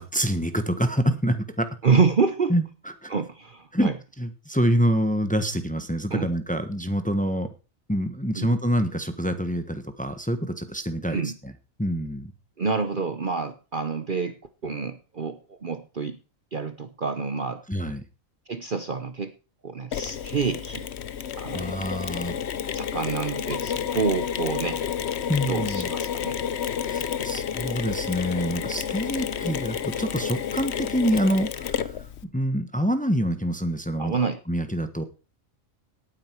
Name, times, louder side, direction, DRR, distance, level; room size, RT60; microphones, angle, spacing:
voice 1, 0.0-1.7 2.5-2.6 3.0-3.1 3.7-3.9 4.2-7.5 7.9-11.5 11.8-12.3 17.7-18.0 21.5-22.4 25.3-25.9 26.8-32.1 32.3-34.2 34.5-35.0, equal, 5° left, 9 dB, 1.2 m, -26 dB
voice 2, 1.8-2.5 3.1-3.9 6.1-6.3 8.4-8.5 11.1-11.3 12.6-16.2 16.5-17.6 18.5-19.3 19.6-20.9 21.3-21.8 22.7-24.8 25.5-26.4 27.1-27.3 34.0-34.4, right 5 dB, 45° right, 10 dB, 0.9 m, -27 dB
Mechanisms, 19.9-32.2, left 8 dB, 55° left, 1.0 m, -30 dB
17.5 x 9.5 x 4.6 m, 0.33 s
omnidirectional pair, 1.4 m